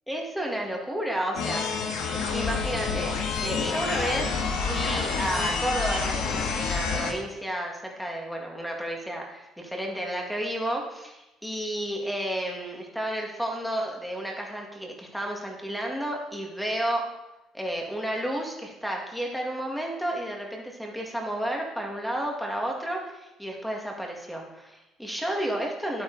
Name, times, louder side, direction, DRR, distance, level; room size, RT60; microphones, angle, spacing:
voice 1, 0.1-2.0 2.3-4.4 4.7-17.0 17.5-26.0, right 1 dB, ahead, 0 dB, 1.8 m, -32 dB
sound 1, 1.3-7.1, left 5 dB, 75° left, 1.7 m, -28 dB
11.5 x 8.8 x 3.9 m, 0.95 s
cardioid pair, 155°, 0 cm